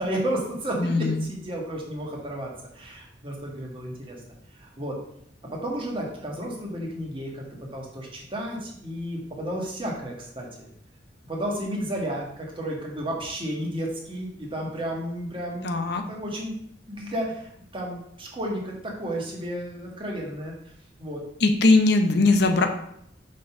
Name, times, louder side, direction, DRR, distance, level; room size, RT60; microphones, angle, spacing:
voice 1, 0.0-4.2 4.5-5.0 5.5-10.7 11.3-15.7 16.1-16.5 16.9-20.5 21.0-21.2, right 1 dB, 30° right, -1 dB, 1.7 m, -32 dB
voice 2, 0.8-1.2 15.6-16.0 21.4-22.7, left 3 dB, 65° left, 6 dB, 0.7 m, -20 dB
5.3 x 4.0 x 5.8 m, 0.70 s
head